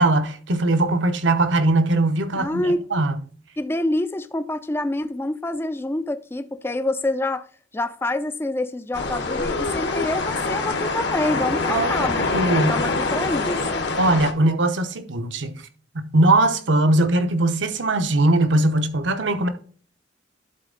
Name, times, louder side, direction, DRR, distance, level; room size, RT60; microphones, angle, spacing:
voice 1, 0.0-2.6 2.9-3.1 11.7-12.0 12.3-12.7 14.0-15.6 15.9-19.5, right 2 dB, 70° right, 0.9 m, -20 dB
voice 2, 2.3-2.9 3.6-7.5 7.7-13.9, left 1 dB, 10° left, 0.4 m, -27 dB
sound 1, 8.9-14.3, left 3 dB, 60° left, 1.0 m, -25 dB
11.5 x 4.1 x 3.9 m
head